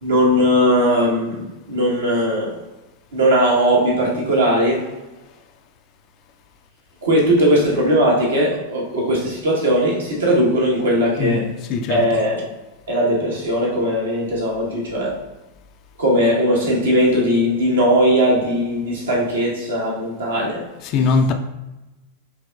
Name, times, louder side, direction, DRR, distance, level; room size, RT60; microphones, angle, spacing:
voice 1, 0.0-2.5 3.1-4.9 7.0-11.4 11.9-12.4 12.9-15.1 16.0-20.6, equal, 65° right, 1.1 m, -18 dB
voice 2, 11.2-12.2 20.8-21.3, left 4 dB, 40° left, 0.3 m, -21 dB
4.8 x 2.8 x 2.3 m
figure-of-eight pair, 90°, 0 cm